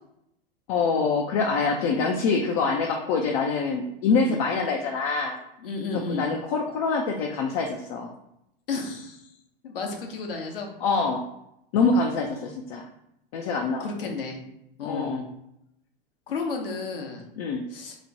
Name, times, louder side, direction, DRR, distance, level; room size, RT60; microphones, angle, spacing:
voice 1, 0.7-5.4 6.1-8.1 10.8-11.2 11.7-12.9 13.3-13.9 14.8-15.3 17.4-17.6, left 4 dB, 40° left, 2 dB, 0.4 m, -25 dB
voice 2, 5.6-6.3 8.7-9.2 9.6-10.7 12.0-12.5 13.8-14.4 14.8-15.2 16.3-17.3 17.7-17.9, left 4 dB, 75° left, 2 dB, 0.7 m, -32 dB
2.9 x 2.1 x 2.7 m, 0.80 s
figure-of-eight pair, 95°, 29 cm